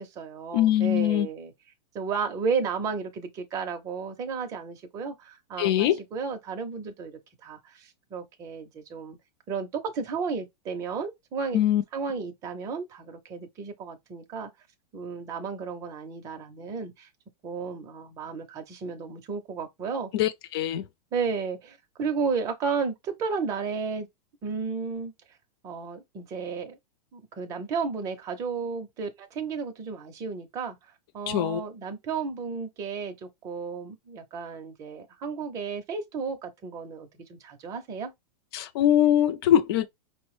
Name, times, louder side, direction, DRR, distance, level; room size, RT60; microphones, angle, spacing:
voice 1, 0.0-1.5 1.9-9.2 9.5-11.6 11.9-14.5 14.9-17.1 17.4-20.1 21.1-24.1 24.4-25.1 25.6-26.8 27.1-30.8 31.1-38.1, right 5 dB, 15° right, 0.5 m, -33 dB
voice 2, 0.5-1.3 5.6-6.0 11.5-11.8 20.1-20.8 31.3-31.6 38.5-39.9, left 11 dB, 35° left, 0.4 m, -22 dB
5.2 x 2.1 x 3.0 m
supercardioid pair, 170°, 21 cm